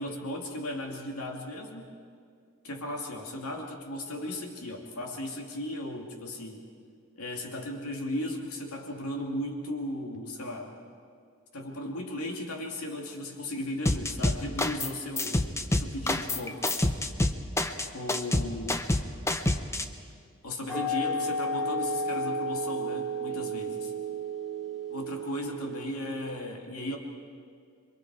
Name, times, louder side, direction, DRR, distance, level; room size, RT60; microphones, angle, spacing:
voice 1, 0.0-1.9 2.6-6.6 7.2-10.7 11.5-16.8 17.9-18.8 20.4-23.9 24.9-27.0, left 1 dB, 75° left, 1 dB, 2.6 m, -36 dB
sound 1, 13.8-14.9 15.2-19.8, left 1 dB, 10° left, 0.8 m, -27 dB
sound 2, 20.7-26.1, right 1 dB, 5° right, 5.9 m, -32 dB
28.0 x 23.5 x 4.8 m, 2.2 s
head